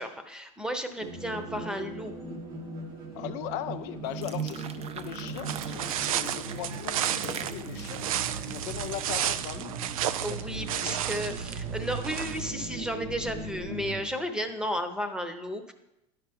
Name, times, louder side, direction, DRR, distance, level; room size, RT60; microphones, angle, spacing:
voice 1, 0.0-2.1 8.3-8.4 10.2-15.7, equal, 5° right, 7 dB, 0.9 m, -33 dB
sound 1, 1.0-14.0, right 4 dB, 70° right, 1.7 m, -38 dB
voice 2, 3.1-8.1 8.5-9.8 10.3-11.0, left 12 dB, 65° left, 9 dB, 0.5 m, -39 dB
sound 2, 4.0-9.3, right 7 dB, 35° right, 0.5 m, -43 dB
sound 3, 5.5-12.6, right 10 dB, 90° right, 0.4 m, -32 dB
11.0 x 5.8 x 3.6 m, 0.89 s
hypercardioid pair, 90°, 18 cm